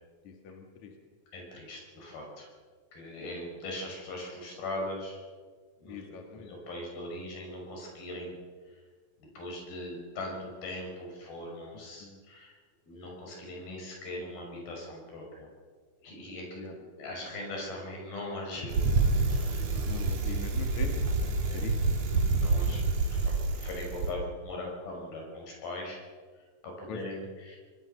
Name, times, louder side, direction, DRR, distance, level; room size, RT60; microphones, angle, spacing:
voice 1, 0.2-0.9 5.8-6.5 12.0-12.2 16.6-16.7 19.9-22.1 26.9-27.0, left 5 dB, 55° left, 3 dB, 3.2 m, -42 dB
voice 2, 1.3-2.5 2.9-5.2 5.8-6.0 6.4-8.4 8.7-8.8 9.4-12.6 12.9-15.5 16.0-19.9 21.5-21.7 22.3-26.0 26.6-27.6, left 1 dB, 80° left, 0 dB, 7.6 m, -40 dB
Bicycle, 18.7-24.1, right 3 dB, 50° right, 2.8 m, -28 dB
25.0 x 20.0 x 6.7 m, 1.5 s
omnidirectional pair, 4.2 m